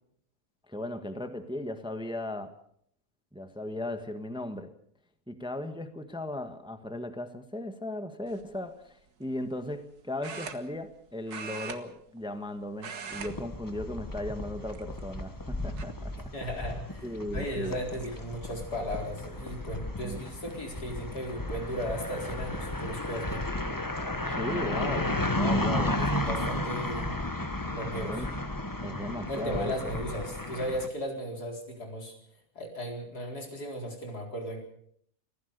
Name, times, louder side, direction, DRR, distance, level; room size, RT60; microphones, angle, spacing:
voice 1, 0.7-2.5 3.3-4.7 5.3-16.1 17.0-17.8 20.0-20.2 24.3-26.6 27.9-28.3 28.8-29.9, left 1 dB, 5° right, 8 dB, 1.4 m, -37 dB
sound 1, 8.3-8.6 10.2-11.0 11.3-12.5 12.7-13.3 13.6-13.9 14.6-15.2 15.8-15.9 17.3-17.4 17.7-18.1, right 5 dB, 80° right, 2.1 m, -41 dB
sound 2, 13.1-30.9, left 1 dB, 15° left, 1.3 m, -33 dB
voice 2, 16.3-17.0 17.3-23.4 25.9-28.1 29.3-32.1 32.5-34.6, equal, 80° left, 2 dB, 5.0 m, -36 dB
25.5 x 16.0 x 6.7 m, 0.67 s
omnidirectional pair, 1.6 m